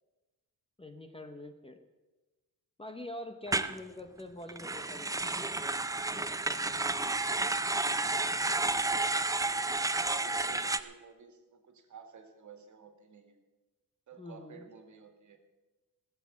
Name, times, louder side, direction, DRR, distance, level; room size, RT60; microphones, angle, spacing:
voice 1, 0.8-1.8 2.8-5.9 6.1-7.2 14.2-14.7, left 1 dB, 15° left, 6 dB, 0.8 m, -46 dB
sound 1, 3.5-3.7 4.5-10.8, right 3 dB, 10° right, 0.4 m, -31 dB
voice 2, 9.8-13.4 14.1-15.4, right 6 dB, 50° right, 5 dB, 1.9 m, -52 dB
17.0 x 7.4 x 8.4 m, 1.2 s
wide cardioid pair, 175°, 37 cm